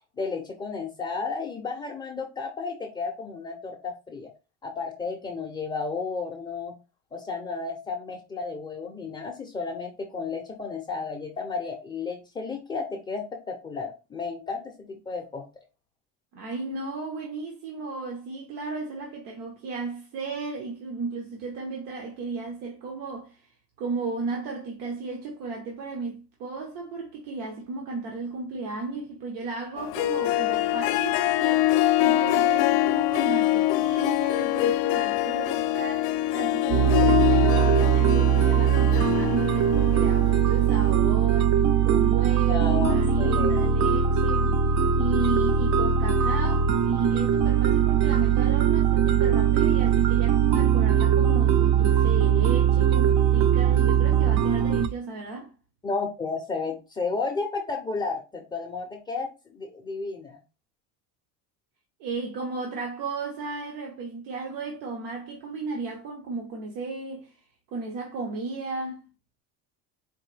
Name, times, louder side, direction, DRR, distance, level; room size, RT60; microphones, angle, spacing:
voice 1, 0.2-4.3 4.6-6.8 7.1-15.4 42.5-43.7 55.8-60.4, left 4 dB, 10° left, 0.4 m, -33 dB
voice 2, 16.3-23.4 23.8-44.6 45.0-55.5 62.0-67.3 67.7-69.1, right 3 dB, 75° right, 1.1 m, -34 dB
Harp, 29.8-41.0, left 15 dB, 70° left, 0.5 m, -24 dB
sound 1, 36.7-54.9, right 8 dB, 45° right, 0.4 m, -21 dB
4.6 x 2.6 x 3.2 m
cardioid pair, 155°, 39 cm